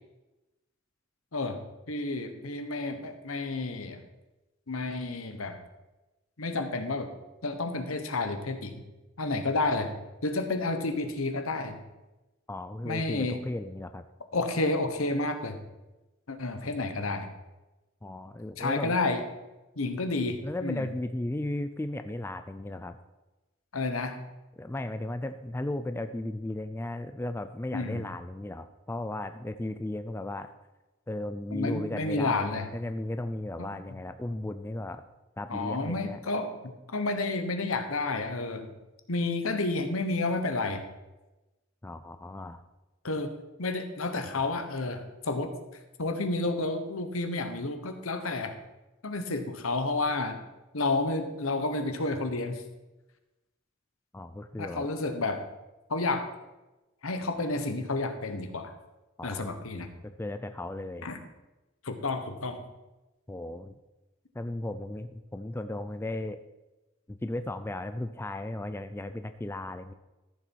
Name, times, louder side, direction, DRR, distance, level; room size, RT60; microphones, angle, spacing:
voice 1, 1.9-4.0 4.7-5.6 6.4-7.1 7.4-8.7 9.2-10.0 10.2-11.8 12.8-13.4 14.3-15.6 16.3-17.3 18.6-19.2 19.8-20.9 23.7-24.2 27.7-28.0 31.5-32.7 33.6-33.7 35.5-38.7 39.1-40.8 43.0-43.3 43.6-45.5 46.0-48.5 49.0-50.4 50.7-52.6 54.6-55.4 55.9-56.3 57.0-58.7 59.2-59.9 61.0-61.2 61.8-62.6, left 2 dB, 75° left, 8 dB, 1.2 m, -30 dB
voice 2, 12.5-14.0 18.0-19.0 20.4-23.0 24.6-30.5 31.1-35.0 35.4-36.2 41.8-42.6 54.1-54.9 59.2-59.5 60.0-61.1 63.3-63.8 64.3-66.4 67.1-69.9, left 1 dB, 10° left, 9 dB, 0.4 m, -35 dB
14.0 x 7.0 x 4.6 m, 1.1 s
head